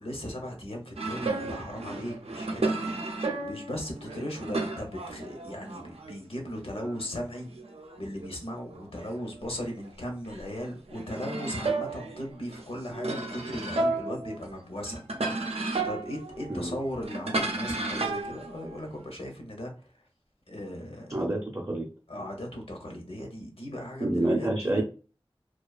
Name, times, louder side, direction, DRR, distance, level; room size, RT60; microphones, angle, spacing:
voice 1, 0.0-7.5 8.0-15.0 15.8-19.7 20.5-21.2 22.1-24.8, equal, 70° left, 2 dB, 0.7 m, -37 dB
sound 1, 1.0-6.3 6.6-9.9 10.2-19.1, right 3 dB, 90° right, 0.4 m, -34 dB
voice 2, 21.1-21.9 24.0-24.8, right 1 dB, 30° right, -3 dB, 0.5 m, -27 dB
2.4 x 2.2 x 2.3 m, 0.36 s
wide cardioid pair, 50°, 10 cm